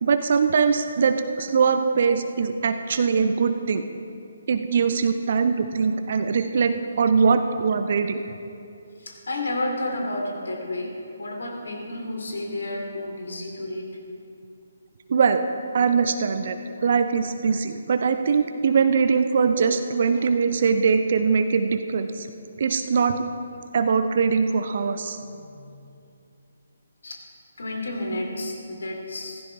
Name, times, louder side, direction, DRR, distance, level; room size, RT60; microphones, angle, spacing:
voice 1, 0.0-3.8 4.5-8.2 15.1-15.4 15.7-22.3 22.6-23.2 23.7-25.2, right 5 dB, 45° right, 9 dB, 0.6 m, -22 dB
voice 2, 9.0-10.9 11.2-14.0 20.1-20.2 25.4-25.8 27.0-27.2 27.6-29.4, left 1 dB, 60° left, 1 dB, 2.8 m, -31 dB
16.0 x 15.0 x 3.5 m, 2.6 s
figure-of-eight pair, 140°, 0 cm